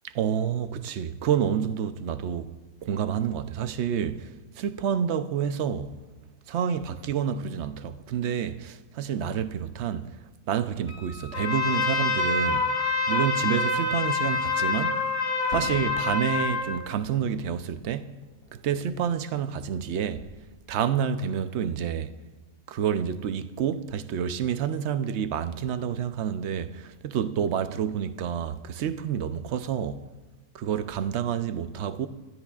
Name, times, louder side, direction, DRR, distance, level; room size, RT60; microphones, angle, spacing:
voice 1, 0.1-2.5 2.8-6.0 6.5-10.1 10.5-15.0 15.5-18.2 18.5-20.3 20.7-22.2 22.7-30.1 30.5-32.1, right 8 dB, 60° right, 0.7 m, -29 dB
Wind instrument woodwind instrument, 10.9-16.2, right 2 dB, 25° right, 3.5 m, -43 dB
Trumpet, 11.3-16.7, left 4 dB, 40° left, 1.9 m, -26 dB
Fireworks, 15.5-19.9 20.1-20.9, right 1 dB, 65° left, 4.1 m, -45 dB
28.0 x 12.5 x 2.4 m
omnidirectional pair, 1.6 m